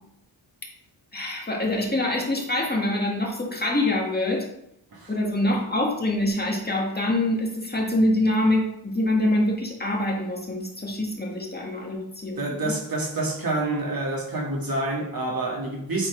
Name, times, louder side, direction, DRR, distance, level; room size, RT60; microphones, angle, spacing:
voice 1, 1.1-4.5 5.1-12.7, left 1 dB, 20° left, 2.0 m, -25 dB
voice 2, 12.4-16.1, right 2 dB, 50° right, 2.0 m, -27 dB
8.7 x 4.1 x 4.6 m
wide cardioid pair, 85°, 44 cm